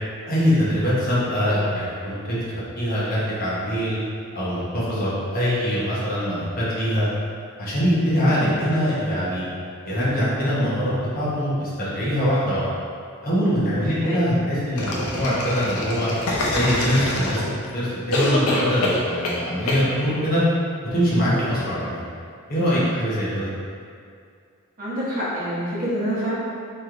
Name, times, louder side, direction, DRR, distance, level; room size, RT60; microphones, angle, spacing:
voice 1, 0.3-2.4 2.8-4.0 4.3-7.1 7.6-9.4 9.8-12.6 13.2-16.1 16.5-17.5 17.7-20.4 20.9-22.0 22.5-23.5, equal, 40° left, -10 dB, 1.1 m, -23 dB
sound 1, 14.8-17.7 18.1-19.4 19.7-19.8, left 2 dB, 75° left, 0.6 m, -25 dB
voice 2, 24.8-26.3, equal, 40° right, -9 dB, 1.0 m, -27 dB
3.2 x 3.1 x 3.7 m, 2.3 s
head